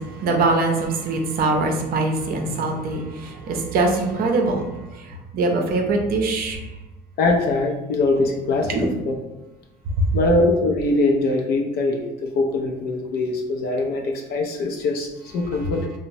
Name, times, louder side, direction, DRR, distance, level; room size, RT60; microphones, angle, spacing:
voice 1, 0.0-6.7 8.7-8.9 10.0-10.1, right 2 dB, 60° right, 3 dB, 0.5 m, -23 dB
voice 2, 7.2-9.2 10.1-15.9, left 2 dB, 70° left, 2 dB, 0.4 m, -22 dB
2.9 x 2.1 x 2.6 m, 1.0 s
cardioid pair, 110°, 17 cm